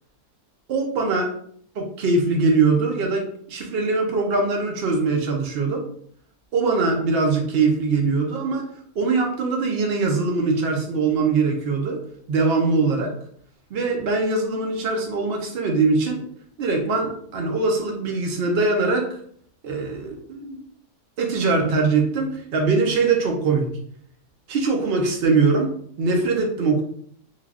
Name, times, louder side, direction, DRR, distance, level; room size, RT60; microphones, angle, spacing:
voice 1, 0.7-1.3 1.8-5.8 6.5-12.0 12.3-13.1 13.7-16.2 16.6-19.2 19.6-20.6 21.2-23.7 24.5-26.8, right 4 dB, 65° right, 2 dB, 0.6 m, -22 dB
3.2 x 2.2 x 2.3 m, 0.62 s
omnidirectional pair, 1.6 m